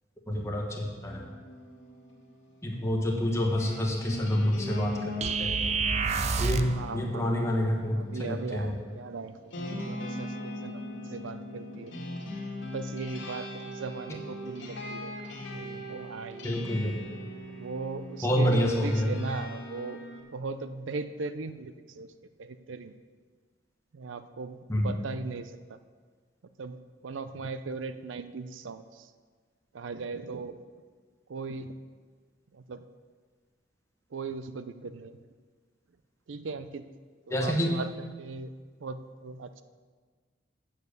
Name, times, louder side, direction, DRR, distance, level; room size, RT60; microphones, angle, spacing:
voice 1, 0.3-1.2 2.6-5.1 5.4-5.5 6.4-8.8 16.4-17.0 18.2-19.1 24.7-24.9 37.3-37.8, equal, 15° left, 0 dB, 1.3 m, -28 dB
sound 1, 1.1-20.2, left 1 dB, 80° left, 1.8 m, -40 dB
sound 2, 5.2-6.8, right 5 dB, 35° right, 0.4 m, -28 dB
voice 2, 6.8-7.6 8.0-12.0 12.6-15.1 15.5-16.6 17.6-20.0 20.3-22.1 22.4-22.9 23.9-25.8 26.6-26.8 27.0-29.1 29.7-30.6 31.3-31.7 32.5-32.8 34.1-35.2 36.3-36.9 37.3-38.5 38.8-39.6, right 4 dB, 85° right, 11 dB, 0.5 m, -38 dB
8.2 x 7.1 x 6.7 m, 1.5 s
head